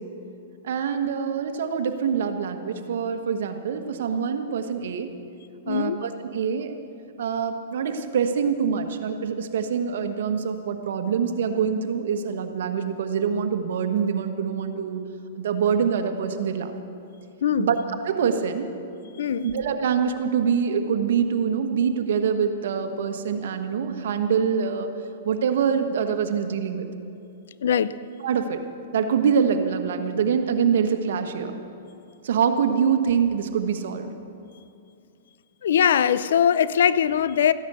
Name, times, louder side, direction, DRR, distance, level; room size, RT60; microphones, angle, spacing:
voice 1, 0.6-5.1 5.7-6.7 7.2-15.0 15.3-16.7 17.6-17.8 18.0-18.7 19.4-24.9 25.2-26.8 28.2-28.6 28.9-31.5 32.2-34.1, right 7 dB, 70° right, 7 dB, 1.3 m, -25 dB
voice 2, 5.7-6.1 17.4-17.7 19.2-19.5 27.6-27.9 35.6-37.5, left 8 dB, 75° left, 16 dB, 0.5 m, -21 dB
14.5 x 10.5 x 6.8 m, 2.6 s
hypercardioid pair, 135°, 0 cm